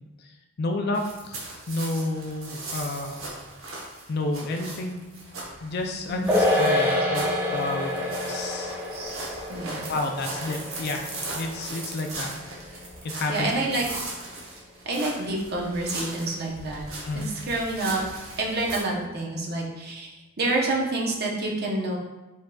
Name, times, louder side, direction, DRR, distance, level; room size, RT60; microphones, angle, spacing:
voice 1, 0.6-3.2 4.1-5.0 5.6-8.8 9.9-11.0 11.3-12.3 13.0-13.5 17.0-17.3, left 2 dB, 45° left, 3 dB, 0.4 m, -30 dB
sound 1, 0.9-18.8, right 2 dB, 70° right, 1.0 m, -38 dB
voice 2, 6.1-6.4 8.9-9.8 13.3-13.8 14.9-16.9 17.1-18.0 18.3-20.1 20.4-22.0, right 2 dB, 45° right, -1 dB, 0.7 m, -28 dB
sound 2, 6.3-12.9 13.2-13.3, left 1 dB, 10° right, 0.7 m, -27 dB
5.4 x 3.6 x 2.3 m, 1.1 s
head